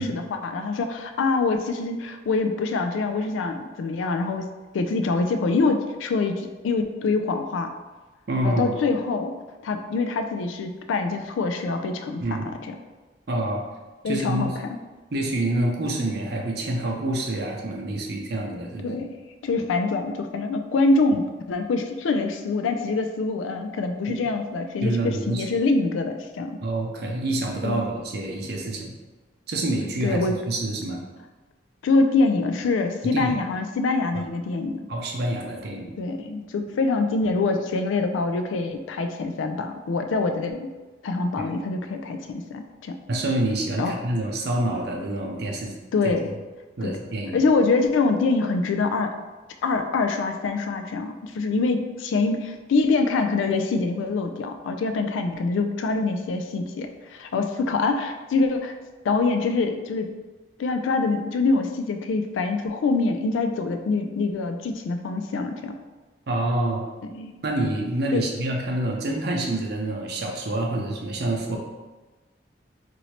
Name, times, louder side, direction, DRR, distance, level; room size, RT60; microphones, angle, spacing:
voice 1, 0.0-4.5 4.7-7.7 8.4-9.3 9.6-12.2 12.7-12.8 14.0-14.5 18.8-19.1 19.4-26.6 27.6-27.9 30.0-30.4 31.8-34.8 36.0-40.7 41.0-43.0 43.8-44.0 45.9-46.3 46.8-46.9 47.3-49.1 49.6-58.8 59.0-60.1 60.6-65.7 67.1-67.3 68.1-68.2, left 3 dB, 90° left, 7 dB, 0.3 m, -25 dB
voice 2, 8.3-8.7 12.2-12.5 13.3-13.6 14.1-14.6 15.1-18.9 24.1-24.2 24.8-25.5 26.6-28.9 29.5-31.0 33.0-33.3 34.9-35.9 37.2-37.3 41.4-41.5 43.1-45.8 46.0-46.1 46.8-47.4 66.3-66.8 67.4-71.6, right 1 dB, 55° right, 0 dB, 0.5 m, -27 dB
3.1 x 2.6 x 2.8 m, 1.2 s
head